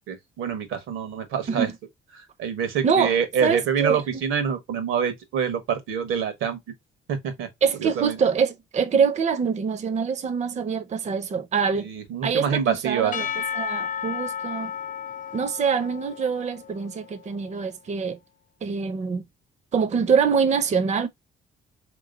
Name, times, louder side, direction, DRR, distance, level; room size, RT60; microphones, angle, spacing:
voice 1, 0.1-1.7 2.1-6.6 7.1-7.5 7.8-8.2 11.7-13.2, right 7 dB, 85° right, 1.3 m, -26 dB
voice 2, 2.8-4.0 7.6-11.9 12.2-13.3 13.5-14.7 15.3-18.2 18.6-19.2 19.7-21.1, right 6 dB, 35° right, 0.6 m, -24 dB
Percussion / Church bell, 13.1-17.3, left 8 dB, 40° left, 0.4 m, -33 dB
3.1 x 3.0 x 3.9 m
cardioid pair, 90°, 20 cm